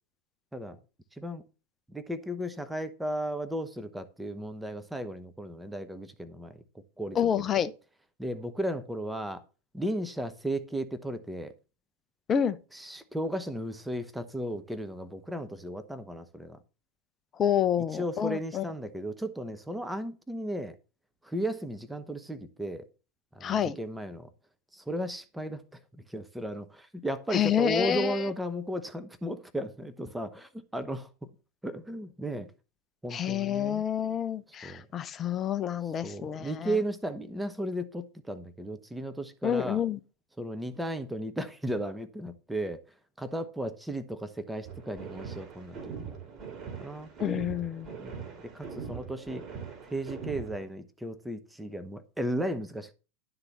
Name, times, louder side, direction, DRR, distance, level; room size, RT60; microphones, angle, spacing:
voice 1, 1.9-6.6 7.0-7.2 8.2-9.4 9.7-11.5 12.7-16.6 17.9-20.8 21.2-22.9 23.3-24.3 24.7-25.6 26.1-31.1 31.6-32.5 33.0-33.8 34.6-34.9 36.0-39.8 40.4-42.8 43.2-46.0 46.8-47.1 48.0-49.4 49.8-52.9, right 1 dB, 5° right, 0.8 m, -35 dB
voice 2, 7.1-7.7 12.3-12.6 17.4-18.7 23.4-23.8 27.3-28.2 33.1-36.8 39.4-40.0 47.2-47.9, left 9 dB, 25° left, 0.6 m, -28 dB
sound 1, 44.6-50.7, right 6 dB, 30° right, 3.0 m, -41 dB
11.5 x 3.9 x 6.9 m
figure-of-eight pair, 90°, 0 cm